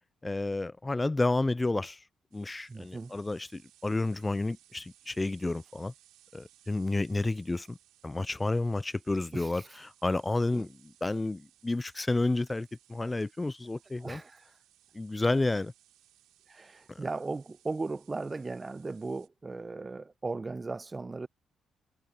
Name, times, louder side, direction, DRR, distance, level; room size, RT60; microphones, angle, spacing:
voice 1, 0.2-2.0 2.3-5.9 6.3-7.8 8.0-9.6 10.0-10.7 11.0-14.2 14.9-15.7, left 2 dB, 20° left, 0.5 m, -30 dB
sound 1, 2.3-19.3, right 14 dB, 75° right, 5.2 m, -63 dB
voice 2, 2.7-3.2 9.3-9.8 10.5-10.7 14.0-14.5 16.5-21.3, right 3 dB, 30° right, 0.9 m, -37 dB
hypercardioid pair, 45°, 0 cm